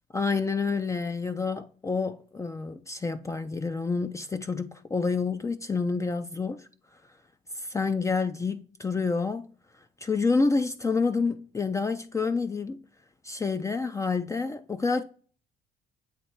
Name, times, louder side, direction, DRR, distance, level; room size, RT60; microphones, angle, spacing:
voice 1, 0.1-6.7 7.5-9.5 10.0-12.8 13.2-15.0, left 4 dB, 20° left, 0.4 m, -28 dB
8.2 x 3.1 x 4.4 m
cardioid pair, 110°, 17 cm